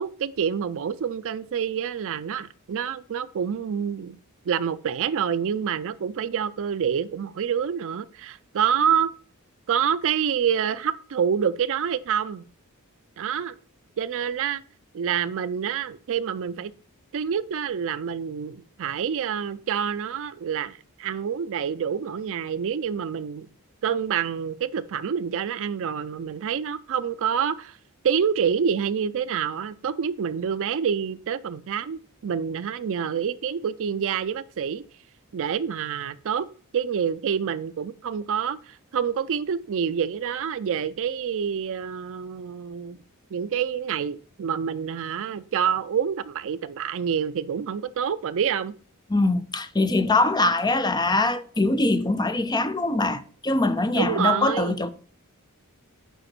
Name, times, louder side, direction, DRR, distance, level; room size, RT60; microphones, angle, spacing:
voice 1, 0.0-4.2 4.5-9.1 9.7-12.4 13.2-13.6 14.0-14.6 14.9-16.7 17.1-23.5 23.8-27.8 28.0-34.8 35.3-36.5 36.7-43.0 43.3-48.7 53.9-54.8, right 7 dB, 60° right, 0.4 m, -27 dB
voice 2, 49.1-54.9, left 2 dB, 20° left, 0.5 m, -23 dB
7.9 x 5.0 x 5.9 m
head